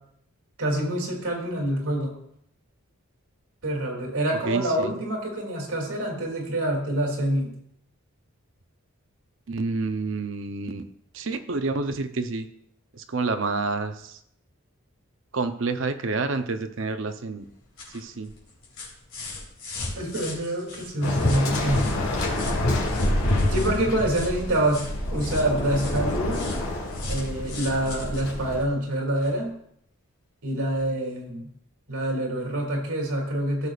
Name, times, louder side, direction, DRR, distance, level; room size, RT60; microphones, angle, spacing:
voice 1, 0.6-2.1 3.6-7.5 20.0-21.9 23.5-24.9 25.1-26.5 27.1-29.5 30.4-31.5 31.9-33.7, right 1 dB, 80° right, 0 dB, 2.7 m, -26 dB
voice 2, 4.4-5.0 9.5-10.9 11.1-12.5 12.9-14.2 15.3-17.5 17.9-18.3, right 3 dB, 60° right, 8 dB, 0.7 m, -28 dB
sound 1, 17.4-29.4 30.7-30.8, left 3 dB, 60° left, 3.5 m, -40 dB
Waves surf, 21.0-28.6, left 1 dB, 85° left, 2.2 m, -27 dB
16.5 x 6.7 x 2.4 m, 0.71 s
head